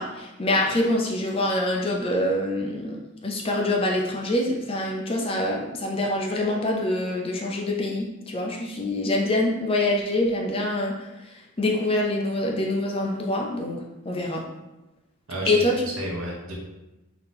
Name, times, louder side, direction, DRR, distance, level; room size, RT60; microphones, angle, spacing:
voice 1, 0.0-14.4 15.5-15.8, left 1 dB, 25° left, -1 dB, 0.5 m, -25 dB
voice 2, 15.3-16.5, right 1 dB, 80° right, -2 dB, 1.0 m, -32 dB
3.8 x 2.8 x 3.4 m, 1.0 s
head